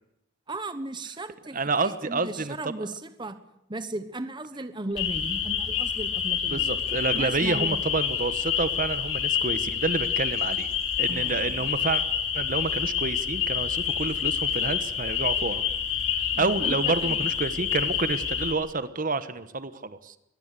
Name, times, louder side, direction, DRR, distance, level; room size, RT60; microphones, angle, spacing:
voice 1, 0.5-3.4 3.7-6.7 7.1-7.8 11.1-11.7 16.3-17.3, right 2 dB, 25° right, 11 dB, 1.2 m, -36 dB
voice 2, 1.5-2.9 6.5-10.7 11.0-12.0 12.3-15.6 16.4-20.2, right 3 dB, 45° right, 13 dB, 1.2 m, -29 dB
sound 1, 5.0-18.5, left 8 dB, 80° left, 3.6 m, -28 dB
24.0 x 18.0 x 8.4 m, 0.82 s
head